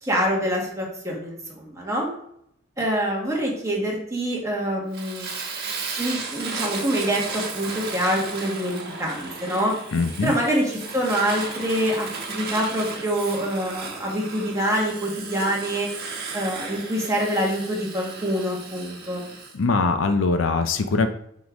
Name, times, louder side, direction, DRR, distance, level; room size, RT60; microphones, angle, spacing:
voice 1, 0.0-2.1 2.8-5.3 6.0-9.7 10.2-15.9 16.3-19.2, equal, 15° right, -3 dB, 1.6 m, -25 dB
Fire, 4.9-19.5, right 4 dB, 50° right, 1.3 m, -35 dB
voice 2, 9.9-10.3 19.5-21.1, left 3 dB, 70° left, 9 dB, 0.5 m, -22 dB
6.0 x 3.8 x 5.0 m, 0.72 s
head